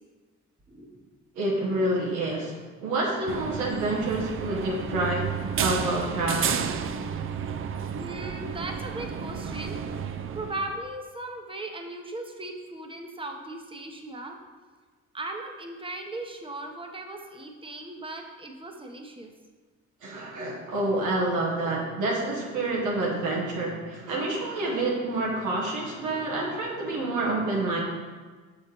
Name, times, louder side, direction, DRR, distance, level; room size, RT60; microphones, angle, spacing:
voice 1, 0.7-1.1 8.0-9.9 10.3-14.4 15.1-19.3, right 2 dB, 15° right, 3 dB, 0.9 m, -38 dB
voice 2, 1.3-5.3 5.6-6.7 20.0-27.8, right 2 dB, 90° right, -3 dB, 1.4 m, -28 dB
sound 1, 3.3-10.8, right 7 dB, 45° right, 0.4 m, -32 dB
6.3 x 4.7 x 4.4 m, 1.4 s
cardioid pair, 90°, 30 cm